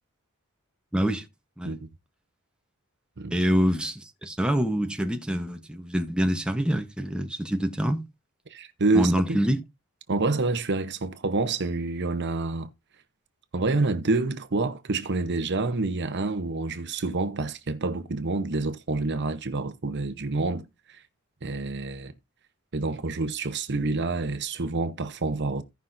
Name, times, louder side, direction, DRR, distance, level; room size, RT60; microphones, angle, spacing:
voice 1, 0.9-1.3 1.6-1.8 3.3-8.0 8.9-9.6, equal, 5° right, 0.9 m, -26 dB
voice 2, 8.5-9.1 10.1-12.7 13.5-21.0 21.4-22.1 22.7-25.6, right 3 dB, 55° right, 0.9 m, -27 dB
16.5 x 5.7 x 2.6 m
head